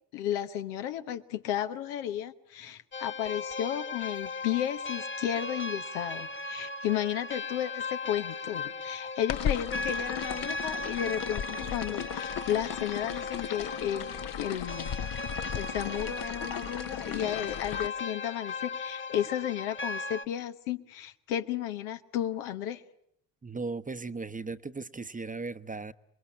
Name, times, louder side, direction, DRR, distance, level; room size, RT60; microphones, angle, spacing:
voice 1, 0.1-14.1 14.4-15.1 15.5-22.8, left 11 dB, 80° left, 1.2 m, -33 dB
sound 1, 2.9-20.3, left 3 dB, 25° left, 1.1 m, -37 dB
sound 2, 9.3-17.9, left 9 dB, 45° left, 0.9 m, -36 dB
voice 2, 23.4-25.9, right 3 dB, 15° right, 0.9 m, -37 dB
26.5 x 22.0 x 8.8 m
hypercardioid pair, 55°, 47 cm